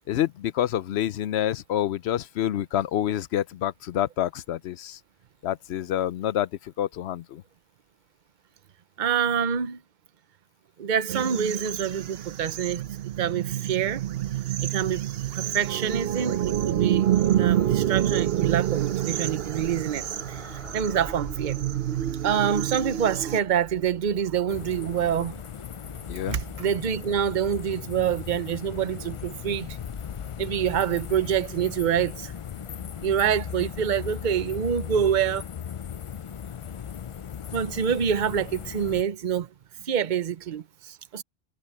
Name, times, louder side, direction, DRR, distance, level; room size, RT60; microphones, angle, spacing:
voice 1, 0.1-5.0 5.4-7.4 26.1-26.4, left 11 dB, 90° left, 0.9 m, -27 dB
voice 2, 9.0-9.8 10.8-12.8 13.2-14.0 14.6-15.1 15.3-21.6 22.2-25.4 26.3-29.7 30.4-32.3 33.0-35.4 37.5-39.5 39.8-41.2, right 8 dB, 50° right, 0.9 m, -26 dB
sound 1, 11.1-23.4, right 11 dB, 70° right, 0.9 m, -28 dB
sound 2, 17.0-34.4, right 1 dB, 30° right, 3.5 m, -46 dB
sound 3, 24.5-39.0, left 8 dB, 55° left, 0.3 m, -37 dB
omnidirectional pair, 1.1 m